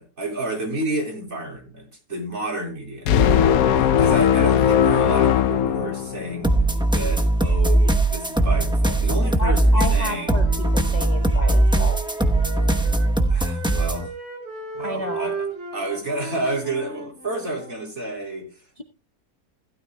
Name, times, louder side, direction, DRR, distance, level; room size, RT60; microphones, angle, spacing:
voice 1, 0.0-10.5 12.6-12.7 13.3-14.1 14.7-15.5 15.7-18.8, right 2 dB, 45° right, 0 dB, 4.3 m, -31 dB
sound 1, 3.1-6.5, left 9 dB, 70° left, 1.1 m, -18 dB
sound 2, 6.4-14.1, right 2 dB, 5° right, 0.6 m, -20 dB
voice 2, 9.4-12.0 14.8-15.3, left 2 dB, 30° left, 4 dB, 1.0 m, -31 dB
Wind instrument woodwind instrument, 9.4-13.1 13.4-17.8, right 3 dB, 70° right, 4.6 m, -36 dB
16.0 x 12.5 x 2.2 m, 0.32 s
omnidirectional pair, 1.7 m